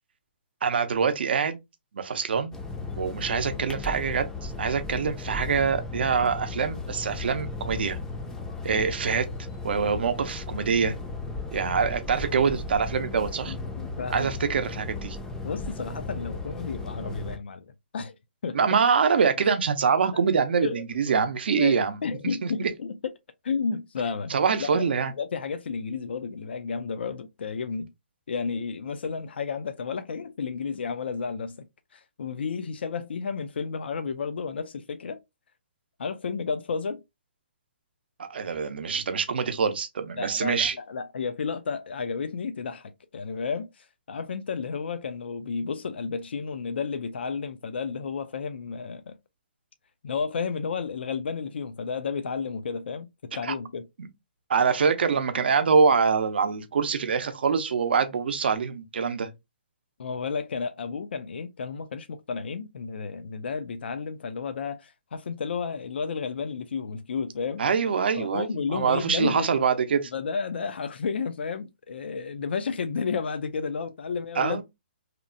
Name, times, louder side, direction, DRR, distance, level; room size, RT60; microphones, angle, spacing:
voice 1, 0.6-1.6 1.9-2.5 3.0-8.0 8.6-9.3 9.6-10.9 11.5-13.5 14.1-15.2 18.5-22.0 22.4-22.7 24.3-25.1 38.2-40.7 53.4-53.5 54.0-54.1 54.5-59.3 67.6-70.1 74.4-74.6, right 6 dB, 70° right, 0.6 m, -25 dB
Harbour Seagulls Day, 2.5-17.4, left 3 dB, 10° left, 0.4 m, -35 dB
voice 2, 13.5-14.4 15.4-17.7 17.9-18.2 18.4-18.6 20.6-21.3 21.6-23.1 23.4-24.3 24.6-24.9 25.2-27.9 28.3-31.7 31.9-35.2 36.0-37.0 40.2-49.2 50.0-53.9 60.0-67.6 68.2-69.5 70.1-74.6, left 5 dB, 75° left, 0.4 m, -32 dB
2.8 x 2.0 x 2.5 m
hypercardioid pair, 145°, 6 cm